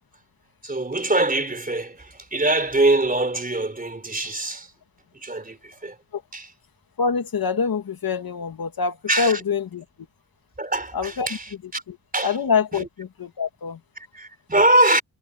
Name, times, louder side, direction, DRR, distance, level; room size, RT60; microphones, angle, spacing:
voice 1, 0.6-4.7 5.1-6.0 6.3-6.5 9.1-9.4 10.6-11.8 12.1-12.4 12.7-12.9 14.0-15.0, right 2 dB, 20° right, 3.9 m, -23 dB
voice 2, 7.0-9.8 10.9-11.3 11.9-12.0 12.2-13.8, left 5 dB, 60° left, 2.1 m, -25 dB
cardioid pair, 80°, 41 cm